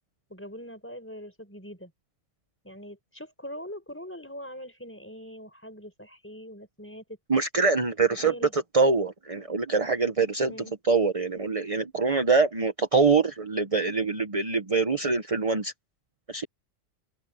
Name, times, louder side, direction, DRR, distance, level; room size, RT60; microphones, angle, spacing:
voice 1, 0.3-1.9 2.6-7.0 8.2-8.5 10.5-10.7, equal, 10° left, 4.8 m, -42 dB
voice 2, 7.3-10.5 10.8-15.7 16.3-16.4, right 4 dB, 30° right, 1.1 m, -24 dB
open air
omnidirectional pair, 1.3 m